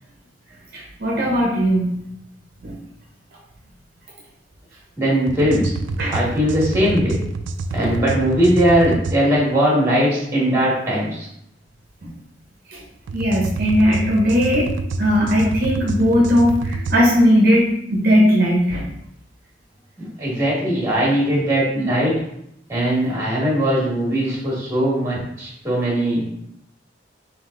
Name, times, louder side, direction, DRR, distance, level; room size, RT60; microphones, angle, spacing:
voice 1, 0.7-1.9 2.6-2.7 6.0-6.1 7.8-8.0 12.0-12.1 12.7-12.8 13.1-14.7 15.0-18.8, equal, 55° right, -3 dB, 0.7 m, -18 dB
voice 2, 5.0-5.7 6.1-7.2 7.7-11.3 20.0-22.1 22.7-26.3, equal, 15° right, -5 dB, 1.5 m, -19 dB
sound 1, 5.3-9.2 13.1-17.0, right 2 dB, 85° right, 0.3 m, -27 dB
3.7 x 2.9 x 3.7 m, 0.76 s
head